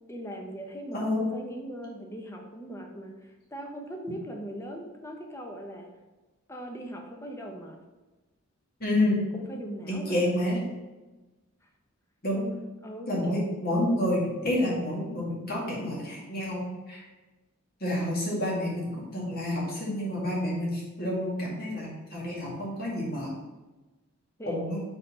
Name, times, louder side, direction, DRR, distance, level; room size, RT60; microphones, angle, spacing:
voice 1, 0.1-5.9 6.5-7.8 9.3-10.3 11.6-11.7 12.3-12.4 12.8-13.1 24.4-24.6, right 1 dB, 10° left, 1 dB, 0.8 m, -40 dB
voice 2, 0.9-1.3 8.8-9.2 9.9-10.6 12.2-12.5 13.1-17.0 17.8-23.3 24.5-24.8, left 1 dB, 45° left, -5 dB, 2.1 m, -29 dB
5.8 x 4.1 x 5.6 m, 1.1 s
head